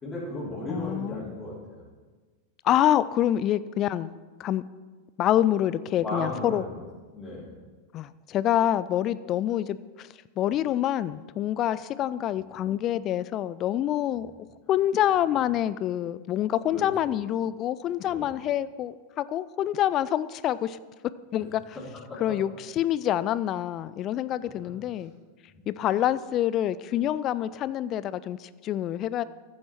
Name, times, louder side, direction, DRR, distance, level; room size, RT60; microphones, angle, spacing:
voice 1, 0.0-1.9 6.0-6.9 7.1-7.5 16.7-17.1 18.0-18.3 21.7-22.3 24.6-24.7 25.5-25.6, left 1 dB, 20° left, -7 dB, 3.3 m, -36 dB
voice 2, 0.7-1.3 2.6-4.1 4.4-4.6 5.2-6.6 7.9-10.1 10.4-14.3 14.7-20.8 21.3-21.6 22.2-25.1 25.7-29.2, left 11 dB, 35° left, 16 dB, 0.3 m, -26 dB
14.0 x 7.3 x 4.4 m, 1.4 s
figure-of-eight pair, 90°, 0 cm